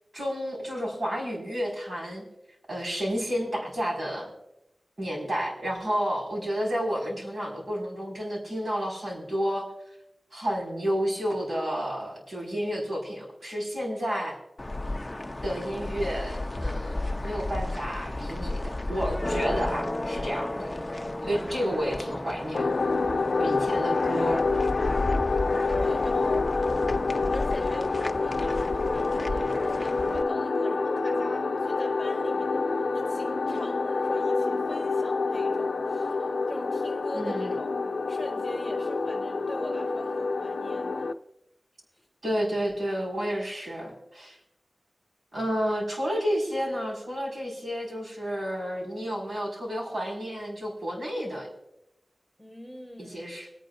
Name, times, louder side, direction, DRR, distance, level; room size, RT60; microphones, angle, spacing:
voice 1, 0.1-2.3 2.7-4.3 5.0-9.7 10.3-14.4 15.4-20.7 21.2-22.8 23.4-24.5 37.1-37.5 42.2-44.4 45.3-51.5 53.0-53.5, equal, 55° right, -3 dB, 5.3 m, -31 dB
sound 1, 14.6-30.2, left 2 dB, 25° left, 0.6 m, -33 dB
sound 2, 22.5-41.1, left 3 dB, 80° left, 0.6 m, -27 dB
voice 2, 25.7-26.6 27.3-32.6 32.9-41.1 52.4-53.2, equal, 10° right, 0 dB, 4.7 m, -42 dB
26.0 x 9.2 x 2.6 m, 0.86 s
wide cardioid pair, 85°, 0 cm